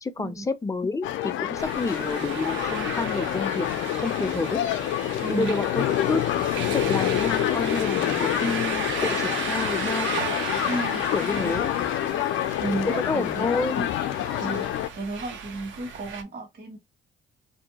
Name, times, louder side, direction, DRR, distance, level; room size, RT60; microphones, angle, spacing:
voice 1, 0.0-3.7 4.0-4.6 5.3-6.2 6.7-10.1 11.1-11.7 12.9-13.9, left 3 dB, 15° left, 0.4 m, -29 dB
sound 1, 1.0-14.9, left 12 dB, 75° left, 0.4 m, -27 dB
sound 2, 1.6-16.2, right 6 dB, 75° right, 0.7 m, -35 dB
voice 2, 5.2-5.5 10.7-11.0 12.6-13.5 14.4-16.8, right 2 dB, 55° right, 1.3 m, -33 dB
2.6 x 2.1 x 2.8 m
cardioid pair, 90°, 20 cm